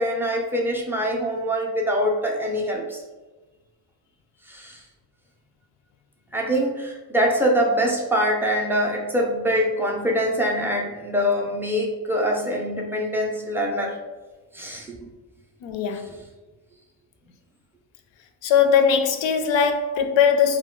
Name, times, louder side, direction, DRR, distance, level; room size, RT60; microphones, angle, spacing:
voice 1, 0.0-3.0 4.5-4.8 6.3-14.0 14.5-15.0, equal, 5° right, 0.3 m, -24 dB
voice 2, 15.6-16.1 18.4-20.6, left 7 dB, 75° left, 0.5 m, -20 dB
2.2 x 2.2 x 3.5 m
cardioid pair, 110°, 45 cm